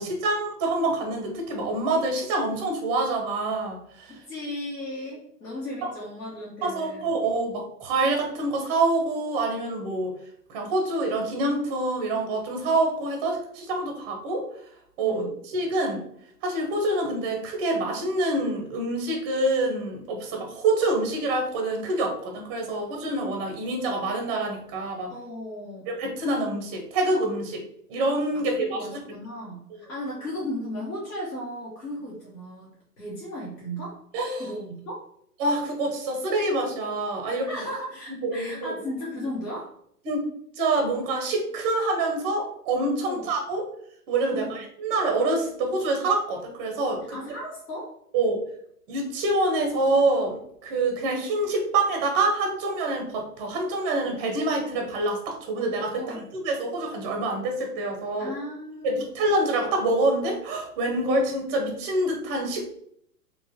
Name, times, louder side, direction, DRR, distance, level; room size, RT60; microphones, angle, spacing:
voice 1, 0.0-4.2 5.8-5.9 6.6-10.1 10.5-14.5 15.0-16.0 16.4-25.1 25.9-27.6 27.9-28.8 29.7-29.8 34.1-34.5 35.4-37.5 38.1-38.7 40.0-40.3 40.6-43.6 44.1-47.0 48.1-48.4 48.9-58.3 58.8-62.7, right 2 dB, 20° right, 3 dB, 0.5 m, -26 dB
voice 2, 4.1-7.1 15.0-15.3 25.1-25.9 28.3-32.7 33.0-34.0 34.4-35.0 37.5-39.7 43.0-43.2 44.3-44.6 47.1-47.9 55.9-56.3 58.2-59.1, equal, 75° left, -5 dB, 1.2 m, -36 dB
3.6 x 2.9 x 2.8 m, 0.68 s
figure-of-eight pair, 115°, 48 cm